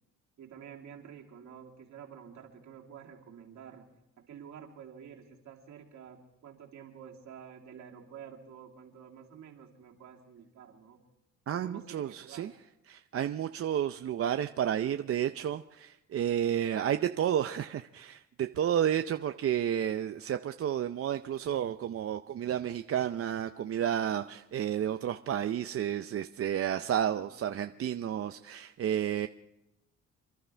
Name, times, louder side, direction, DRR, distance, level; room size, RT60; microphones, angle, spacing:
voice 1, 0.4-3.9 4.2-11.0 11.5-12.5 27.0-27.6, right 8 dB, 70° right, 0 dB, 2.8 m, -50 dB
voice 2, 11.5-12.5 12.9-29.3, right 10 dB, 50° right, 8 dB, 0.6 m, -31 dB
27.5 x 11.5 x 3.4 m, 0.89 s
cardioid pair, 90°, 30 cm